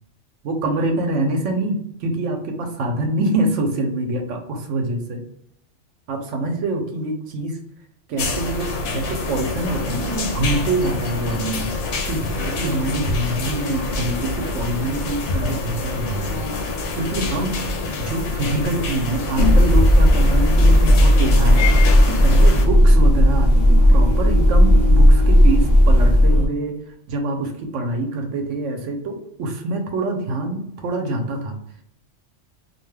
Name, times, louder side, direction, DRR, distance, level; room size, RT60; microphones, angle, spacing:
voice 1, 0.4-5.2 6.1-7.6 8.1-11.7 12.1-16.4 17.0-17.6 18.0-26.8 27.1-31.6, right 2 dB, 85° right, 4 dB, 1.0 m, -25 dB
sound 1, 8.2-22.6, left 3 dB, 90° left, 1.0 m, -26 dB
sound 2, 19.4-26.5, equal, 45° left, 0.6 m, -13 dB
2.5 x 2.2 x 3.2 m, 0.73 s
omnidirectional pair, 1.2 m